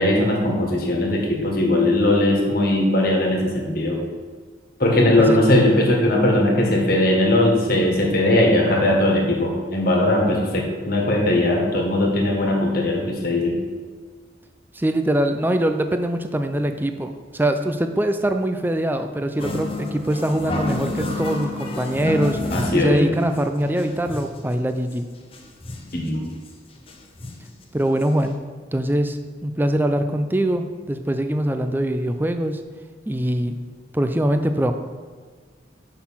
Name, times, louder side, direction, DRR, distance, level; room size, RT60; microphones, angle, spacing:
voice 1, 0.0-4.0 4.8-13.6 22.5-23.1 25.9-26.2, left 1 dB, 50° left, -1 dB, 1.6 m, -19 dB
voice 2, 14.7-22.4 22.7-25.1 27.7-28.4 28.7-32.6 33.1-33.6 33.9-34.7, right 1 dB, 10° right, 7 dB, 0.4 m, -23 dB
sound 1, 19.4-23.0 23.4-23.5 23.7-24.4 24.9-25.0 25.2-26.0 26.5-26.6 26.9-27.5 28.0-28.1 28.3-28.4, left 2 dB, 30° left, 0.8 m, -29 dB
6.5 x 5.9 x 5.7 m, 1.5 s
head